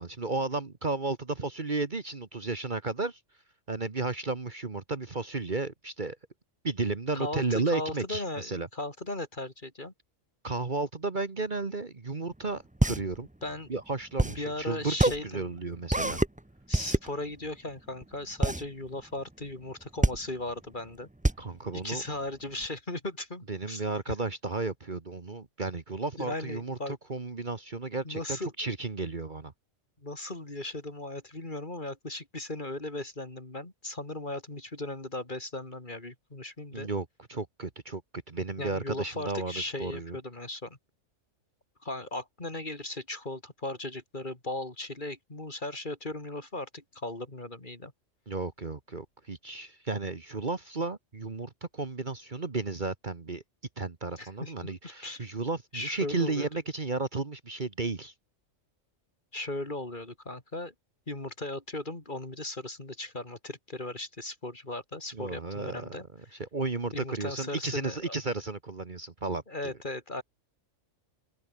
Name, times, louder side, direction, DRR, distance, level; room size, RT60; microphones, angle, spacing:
voice 1, 0.0-3.2 3.7-6.2 6.6-8.7 10.4-13.3 13.7-16.2 21.4-22.0 23.5-26.8 27.1-29.5 36.7-38.0 38.3-40.2 48.3-53.4 53.8-58.1 65.1-66.0 66.4-69.7, right 3 dB, 40° right, 1.6 m, -33 dB
voice 2, 7.1-9.9 13.4-13.7 14.3-15.5 16.7-21.1 21.7-24.1 26.2-27.0 28.0-28.5 30.0-36.9 38.6-40.8 41.8-47.9 54.2-55.3 55.7-56.5 59.3-60.7 61.1-66.4 66.9-68.2 69.5-70.2, left 2 dB, 40° left, 3.6 m, -37 dB
sound 1, 12.3-22.7, right 1 dB, 10° right, 0.6 m, -28 dB
omnidirectional pair, 1.3 m